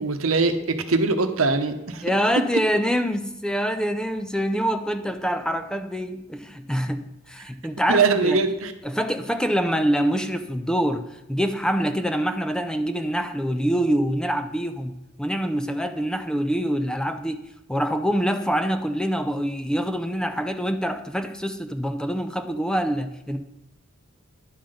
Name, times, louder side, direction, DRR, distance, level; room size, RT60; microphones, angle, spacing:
voice 1, 0.0-2.0 7.9-8.7, right 4 dB, 80° right, 8 dB, 0.9 m, -22 dB
voice 2, 2.0-8.4 8.8-23.4, equal, 5° left, 8 dB, 0.4 m, -25 dB
10.5 x 5.7 x 5.1 m, 0.89 s
head